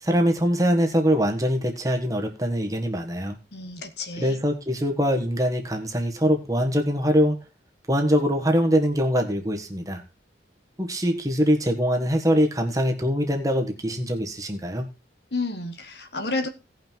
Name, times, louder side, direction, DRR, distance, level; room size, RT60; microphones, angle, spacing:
voice 1, 0.0-3.4 4.2-7.4 7.9-10.0 10.8-14.9, equal, 20° right, 1.5 m, -23 dB
voice 2, 3.5-4.4 15.3-16.5, left 3 dB, 60° left, 1.5 m, -30 dB
17.0 x 5.8 x 4.6 m
head